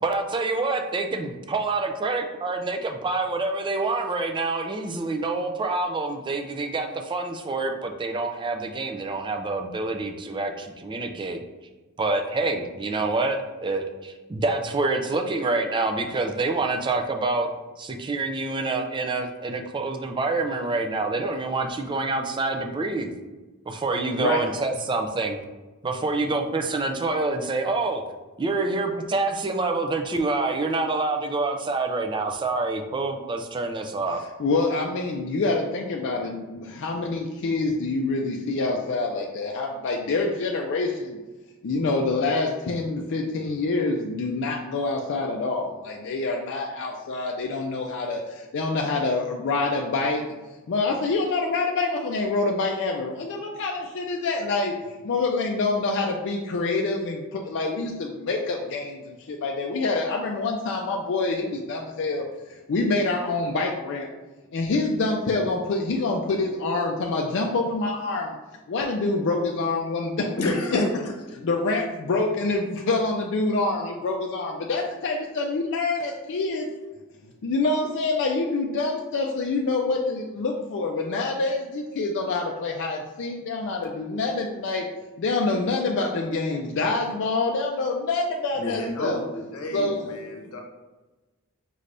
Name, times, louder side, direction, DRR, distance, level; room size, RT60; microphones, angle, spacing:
voice 1, 0.0-11.4 12.0-17.5 17.8-23.1 23.7-25.4 25.8-28.0 28.4-34.2, right 3 dB, 20° right, 5 dB, 0.4 m, -27 dB
voice 2, 34.1-41.2 41.6-50.2 50.7-62.2 62.5-64.1 64.5-68.4 68.7-70.9 71.4-76.7 77.4-84.8 85.2-89.2 89.7-90.0, left 3 dB, 55° left, 0 dB, 0.4 m, -26 dB
voice 3, 70.4-71.1 71.4-71.5 88.6-90.6, left 1 dB, 70° left, 1 dB, 0.8 m, -31 dB
5.3 x 3.3 x 2.5 m, 1.2 s
head